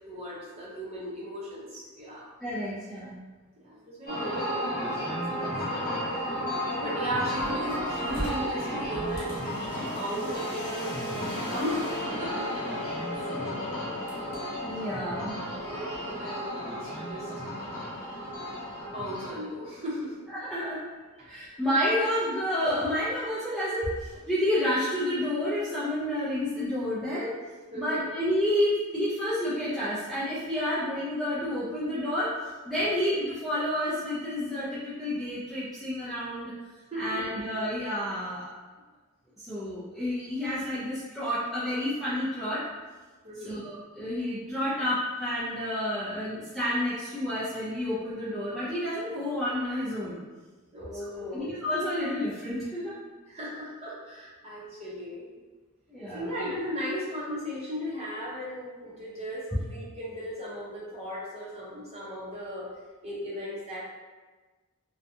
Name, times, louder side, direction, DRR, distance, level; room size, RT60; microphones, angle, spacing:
voice 1, 0.1-2.3 3.6-5.6 6.7-12.9 13.3-13.8 15.7-17.3 18.4-18.7 18.9-20.2 21.2-21.6 27.7-28.1 32.8-32.9 36.9-37.3 43.2-43.6 50.7-51.5 53.3-55.2 56.1-62.7 63.0-63.8, equal, 30° right, -7 dB, 0.7 m, -36 dB
voice 2, 2.4-3.2 14.6-15.4 17.8-18.4 20.3-20.8 21.2-27.3 27.7-32.3 32.7-36.5 36.9-38.5 39.4-42.7 43.4-50.2 50.9-51.1 51.3-53.0 55.9-56.4, left 1 dB, ahead, -12 dB, 0.3 m, -30 dB
sound 1, 4.1-19.3, equal, 40° left, 0.9 m, -33 dB
sound 2, 9.0-20.7, left 2 dB, 90° left, 0.7 m, -41 dB
2.6 x 2.2 x 2.5 m, 1.3 s
head